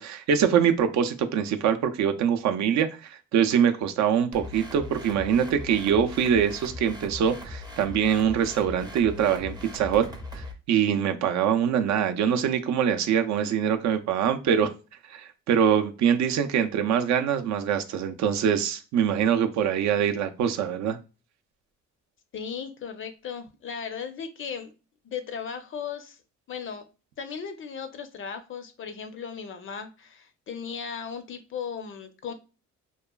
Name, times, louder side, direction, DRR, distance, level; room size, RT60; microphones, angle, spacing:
voice 1, 0.0-10.1 10.3-14.7 15.1-21.0, right 8 dB, 65° right, 6 dB, 0.4 m, -24 dB
sound 1, 4.3-10.5, left 2 dB, 15° right, 0.5 m, -40 dB
voice 2, 22.3-24.7 25.0-26.2 26.5-26.8 27.2-32.3, left 6 dB, 45° left, 9 dB, 0.5 m, -36 dB
2.9 x 2.3 x 2.2 m, 0.32 s
cardioid pair, 90°, 30 cm